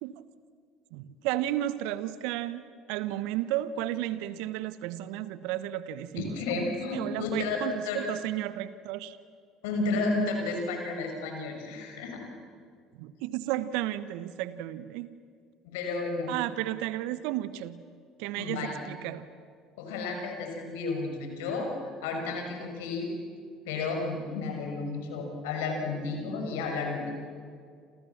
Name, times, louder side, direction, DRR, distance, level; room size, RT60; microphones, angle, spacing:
voice 1, 0.9-6.7 6.9-9.2 13.0-15.1 16.3-17.8 18.2-19.3, right 14 dB, 70° right, 15 dB, 1.1 m, -33 dB
voice 2, 6.1-8.0 9.6-12.3 15.6-16.3 18.3-18.8 19.8-23.1 23.7-27.1, left 3 dB, 75° left, 3 dB, 6.6 m, -32 dB
28.5 x 28.5 x 7.4 m, 2.2 s
hypercardioid pair, 60°, 0 cm